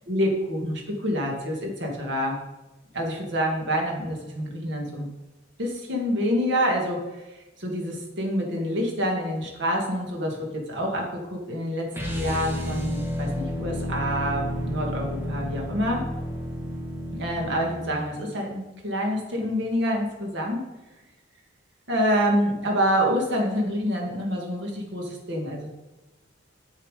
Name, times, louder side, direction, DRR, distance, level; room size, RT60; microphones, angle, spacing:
voice 1, 0.1-2.4 2.9-5.1 5.6-16.0 17.1-20.6 21.9-25.7, equal, 65° right, 1 dB, 1.9 m, -27 dB
sound 1, 11.9-18.0, left 1 dB, 10° right, 1.3 m, -31 dB
7.5 x 7.0 x 5.0 m, 1.1 s
head